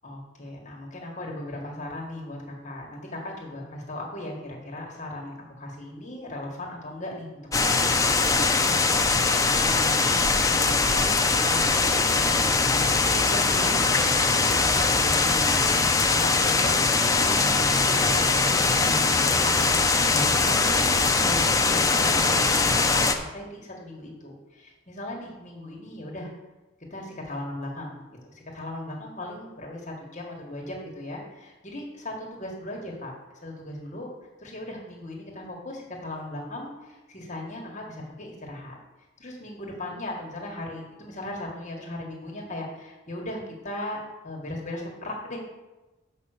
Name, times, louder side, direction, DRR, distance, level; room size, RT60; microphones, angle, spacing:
voice 1, 0.0-8.2 9.6-26.3 26.9-33.1 33.4-34.1 34.4-38.8 39.2-45.4, left 1 dB, 35° left, -1 dB, 1.8 m, -38 dB
sound 1, 7.5-23.1, left 4 dB, 15° left, 0.6 m, -22 dB
7.5 x 5.5 x 6.6 m, 1.1 s
head